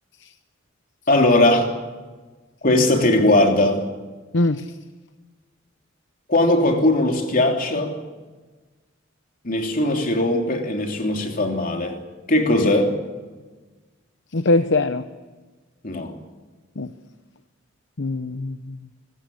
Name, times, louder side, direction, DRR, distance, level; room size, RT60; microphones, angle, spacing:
voice 1, 1.1-1.7 2.6-3.8 6.3-7.9 9.4-12.0 12.3-13.0 15.8-16.1, left 1 dB, 45° left, 3 dB, 3.2 m, -19 dB
voice 2, 4.3-4.7 14.3-15.1 16.8-16.9 18.0-18.8, left 2 dB, 65° left, 10 dB, 0.8 m, -22 dB
26.0 x 14.5 x 10.0 m, 1.3 s
head